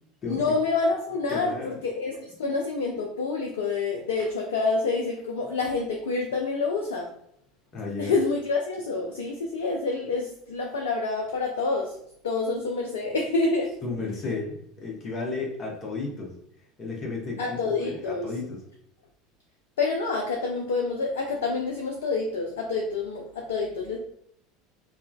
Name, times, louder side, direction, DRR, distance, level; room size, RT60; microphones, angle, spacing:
voice 1, 0.3-7.1 8.0-12.0 12.2-13.8 17.4-18.3 19.8-24.0, left 3 dB, 70° left, 1 dB, 0.3 m, -27 dB
voice 2, 1.3-1.7 7.7-8.1 13.8-16.3 16.8-18.6, left 3 dB, 30° left, -1 dB, 0.8 m, -33 dB
3.7 x 2.1 x 2.2 m, 0.68 s
figure-of-eight pair, 70°, 0 cm